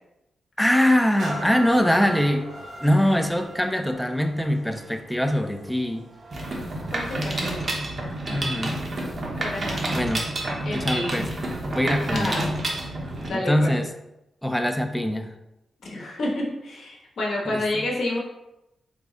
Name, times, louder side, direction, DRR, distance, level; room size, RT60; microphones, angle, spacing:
voice 1, 0.6-2.5 2.8-6.1 8.3-8.8 9.9-10.3 10.6-11.3 11.7-12.4 13.3-13.9 14.4-15.3 17.5-17.6, equal, 5° left, 6 dB, 0.3 m, -23 dB
sound 1, 1.2-8.8 9.4-9.5, right 1 dB, 70° right, 0.9 m, -40 dB
Mechanisms, 6.3-13.3, right 1 dB, 45° right, 0.6 m, -29 dB
voice 2, 6.9-7.4 9.2-9.8 10.6-11.2 12.1-12.5 13.2-13.8 15.8-18.2, left 1 dB, 70° left, -2 dB, 0.9 m, -29 dB
3.5 x 2.0 x 3.6 m, 0.90 s
cardioid pair, 90°, 0 cm